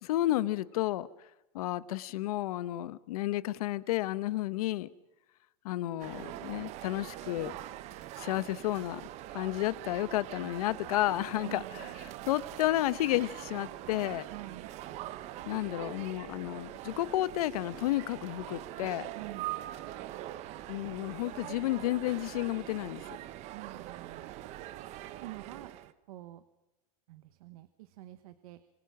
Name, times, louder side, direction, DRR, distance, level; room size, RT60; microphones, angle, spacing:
voice 1, 0.0-1.1 1.5-4.9 5.6-7.5 8.2-9.0 9.3-14.2 15.5-19.1 20.7-23.0, left 15 dB, 75° left, 1.0 m, -32 dB
sound 1, 6.0-25.9, right 14 dB, 35° right, 0.9 m, -43 dB
voice 2, 11.4-12.3 14.3-14.7 19.1-19.5 23.5-24.3 25.2-25.7 26.1-26.4 27.1-28.6, right 16 dB, 70° right, 1.2 m, -47 dB
26.0 x 22.5 x 6.0 m
supercardioid pair, 160°, 19 cm